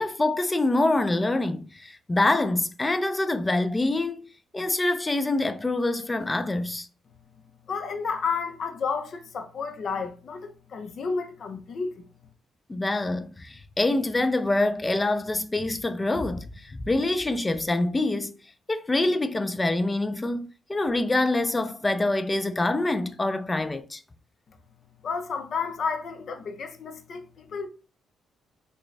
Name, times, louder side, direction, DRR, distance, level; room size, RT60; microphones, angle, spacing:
voice 1, 0.0-4.3 4.5-6.9 12.7-18.4 18.7-24.0, left 2 dB, 20° left, 0.3 m, -25 dB
voice 2, 7.7-12.0 25.0-27.7, left 5 dB, 55° left, 0.6 m, -31 dB
3.7 x 2.3 x 3.2 m
cardioid pair, 90°, 0 cm